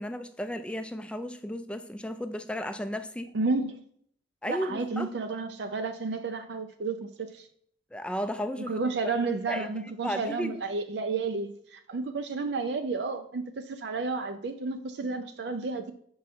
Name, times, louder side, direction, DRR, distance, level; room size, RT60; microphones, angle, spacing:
voice 1, 0.0-3.3 4.4-5.1 7.9-8.8 9.5-10.6, equal, 5° left, 0.4 m, -34 dB
voice 2, 3.3-3.8 4.5-7.5 8.7-15.9, right 3 dB, 60° right, 0.4 m, -31 dB
6.2 x 4.7 x 4.2 m
head